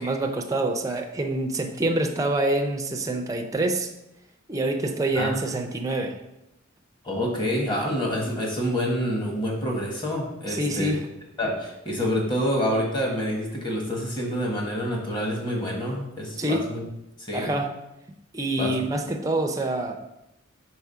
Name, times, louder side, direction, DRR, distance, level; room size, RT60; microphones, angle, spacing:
voice 1, 0.0-3.9 4.5-6.2 10.5-11.1 16.4-16.7 17.3-17.7 18.3-20.0, right 2 dB, 15° right, 4 dB, 0.5 m, -26 dB
voice 2, 7.0-11.0 11.4-16.8 17.2-17.5 18.6-18.8, equal, 25° left, -1 dB, 1.4 m, -27 dB
4.7 x 4.3 x 5.5 m, 0.87 s
head